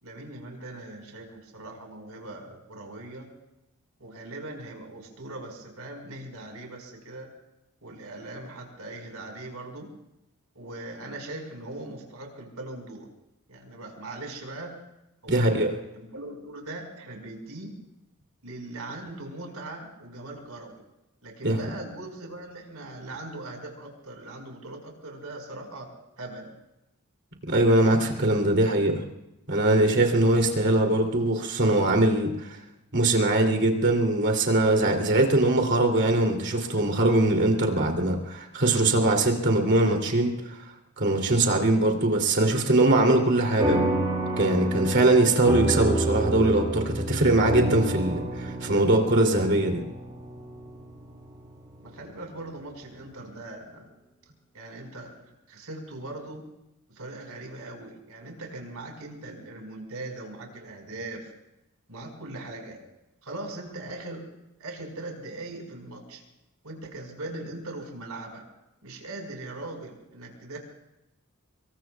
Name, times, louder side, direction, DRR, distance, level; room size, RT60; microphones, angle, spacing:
voice 1, 0.0-3.3 4.0-7.3 7.8-9.9 10.5-13.1 13.5-14.7 15.2-17.7 18.4-20.8 21.2-25.9 26.2-26.5 51.8-53.9 54.5-55.2 55.5-56.4 56.9-61.3 61.9-62.8 63.2-64.2 64.6-66.2 66.6-68.4 68.8-70.6, right 2 dB, 80° right, 2 dB, 4.8 m, -40 dB
voice 2, 15.3-15.7 21.4-21.6 27.5-29.0 29.5-32.6 32.9-40.3 41.0-43.8 44.4-49.8, right 2 dB, 50° right, 2 dB, 2.8 m, -22 dB
sound 1, 43.6-52.4, right 1 dB, 20° right, 5.1 m, -29 dB
26.0 x 22.5 x 2.3 m, 0.91 s
head